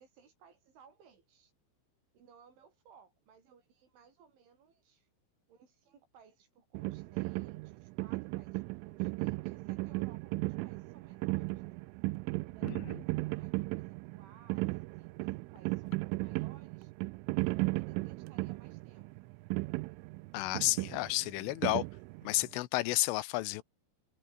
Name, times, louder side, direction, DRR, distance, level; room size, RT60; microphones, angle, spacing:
voice 1, 0.0-1.5 2.1-5.1 5.5-11.8 12.4-16.9 17.3-19.3, right 6 dB, 70° right, 7.3 m, -62 dB
sound 1, 6.8-22.5, right 24 dB, 85° right, 3.0 m, -36 dB
voice 2, 12.6-13.0 20.3-21.8 22.2-23.6, left 18 dB, 85° left, 3.3 m, -32 dB
omnidirectional pair, 5.8 m